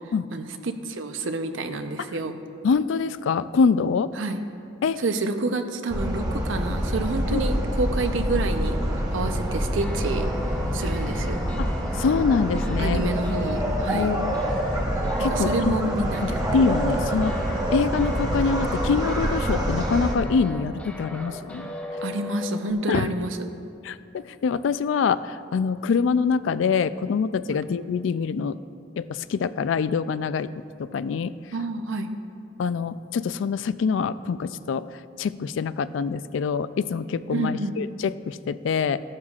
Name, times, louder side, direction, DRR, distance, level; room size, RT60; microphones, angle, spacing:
voice 1, 0.3-2.4 4.2-4.4 5.0-8.8 9.1-10.3 10.7-11.4 12.8-14.1 15.3-16.4 22.0-23.5 27.5-27.6 31.5-32.1 37.3-37.7, right 2 dB, 80° right, 7 dB, 0.7 m, -28 dB
voice 2, 2.6-4.1 4.8-5.0 7.3-7.4 11.6-13.1 13.9-14.4 15.2-15.7 16.2-17.3 17.7-21.7 22.9-23.1 23.8-28.6 29.0-30.5 30.8-31.3 32.6-34.9 35.2-39.0, left 5 dB, 75° left, 15 dB, 0.3 m, -25 dB
sound 1, 5.9-20.1, equal, 20° right, 1.2 m, -26 dB
sound 2, 9.8-22.7, left 1 dB, 5° left, 0.8 m, -37 dB
14.0 x 12.0 x 2.4 m, 2.4 s
head